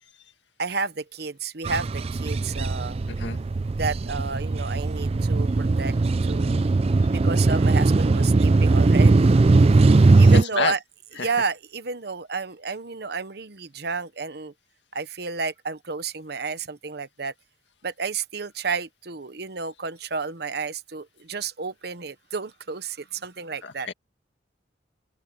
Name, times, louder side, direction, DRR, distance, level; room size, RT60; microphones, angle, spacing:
voice 1, 0.6-3.0 3.7-5.9 6.2-6.6 7.1-9.4 10.2-10.8 11.2-14.5 14.9-17.3 17.8-23.9, right 4 dB, 60° right, 1.1 m, -31 dB
sound 1, 1.6-10.4, right 3 dB, 35° right, 0.4 m, -19 dB
voice 2, 3.1-3.4 10.1-10.7 11.2-11.3 23.6-23.9, left 5 dB, 75° left, 2.0 m, -29 dB
open air
head